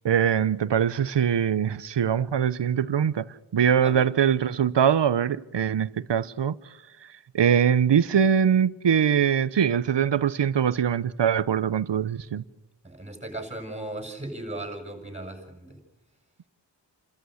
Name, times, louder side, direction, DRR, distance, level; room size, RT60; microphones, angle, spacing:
voice 1, 0.0-6.6 7.3-12.4, right 8 dB, 70° right, 0.9 m, -22 dB
voice 2, 12.8-15.8, right 1 dB, 15° right, 6.7 m, -37 dB
30.0 x 14.0 x 6.5 m
wide cardioid pair, 75°, 45 cm